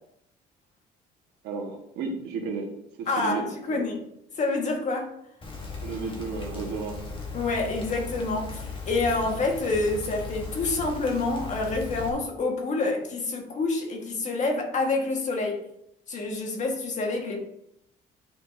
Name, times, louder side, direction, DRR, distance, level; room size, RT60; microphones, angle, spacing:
voice 1, 1.4-2.7 3.0-3.8 5.8-7.0, right 4 dB, 80° right, 1 dB, 1.7 m, -33 dB
voice 2, 3.1-4.0 4.4-5.2 7.3-15.6 16.1-17.4, left 3 dB, 45° left, 2 dB, 1.8 m, -27 dB
Rain, 5.4-12.1, left 4 dB, 30° left, 1.6 m, -37 dB
9.9 x 5.0 x 2.8 m, 0.77 s
cardioid pair, 110°, 17 cm